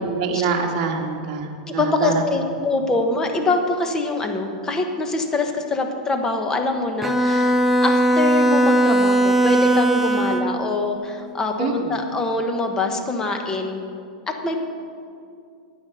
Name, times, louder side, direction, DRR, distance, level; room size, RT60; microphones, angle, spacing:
voice 1, 0.0-2.2 11.6-12.1, right 5 dB, 45° right, 0 dB, 1.7 m, -25 dB
voice 2, 1.8-7.5 7.8-13.8 14.3-14.6, left 3 dB, 15° left, 4 dB, 1.1 m, -24 dB
Bowed string instrument, 7.0-10.6, right 1 dB, 5° right, 0.6 m, -18 dB
10.5 x 9.0 x 6.8 m, 2.4 s
supercardioid pair, 145°, 4 cm